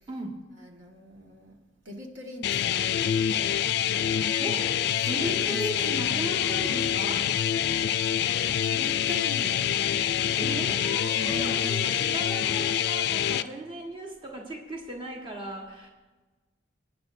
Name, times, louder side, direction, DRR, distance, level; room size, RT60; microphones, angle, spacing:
voice 1, 0.6-1.6 1.8-2.8 3.4-4.4 5.2-5.9 8.4-10.1 11.1-11.8, equal, 70° right, 1 dB, 1.6 m, -42 dB
sound 1, 2.4-13.4, left 9 dB, 55° left, 0.3 m, -26 dB
voice 2, 4.4-4.7 5.0-7.3 10.4-15.9, right 1 dB, 25° right, -1 dB, 1.4 m, -36 dB
27.5 x 9.5 x 2.6 m, 1.3 s
head